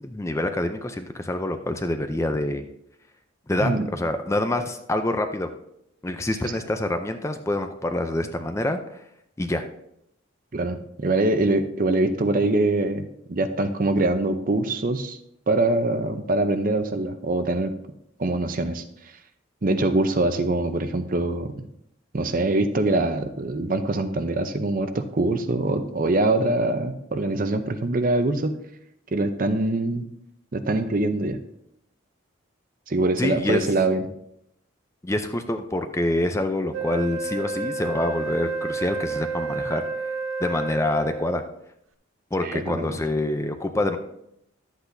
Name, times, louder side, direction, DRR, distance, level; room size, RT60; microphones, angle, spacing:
voice 1, 0.0-2.6 3.5-5.5 6.0-9.0 9.4-9.6 33.2-33.6 35.0-39.8 40.4-41.4 42.3-44.0, left 1 dB, 15° left, 7 dB, 0.4 m, -26 dB
voice 2, 10.5-15.2 15.5-17.7 18.2-18.8 19.6-21.5 22.1-28.6 29.1-30.0 30.5-31.4 32.9-34.0 42.4-43.0, right 2 dB, 40° right, 9 dB, 0.6 m, -23 dB
Wind instrument woodwind instrument, 36.7-41.5, right 3 dB, 85° right, 0.6 m, -30 dB
12.0 x 8.1 x 2.6 m, 0.78 s
head